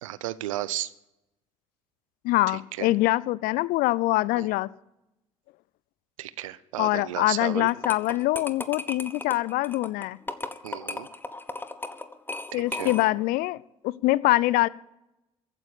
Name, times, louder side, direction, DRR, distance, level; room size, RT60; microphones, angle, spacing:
voice 1, 0.0-0.9 2.5-2.9 4.4-4.5 6.2-7.7 10.6-11.1 12.5-12.9, right 14 dB, 75° right, 0.7 m, -34 dB
voice 2, 2.2-4.7 6.8-10.2 12.5-13.6 13.8-14.7, left 18 dB, 60° left, 0.5 m, -24 dB
sound 1, 7.7-13.3, left 2 dB, 10° left, 1.3 m, -36 dB
15.0 x 9.3 x 8.5 m
figure-of-eight pair, 50°, 17 cm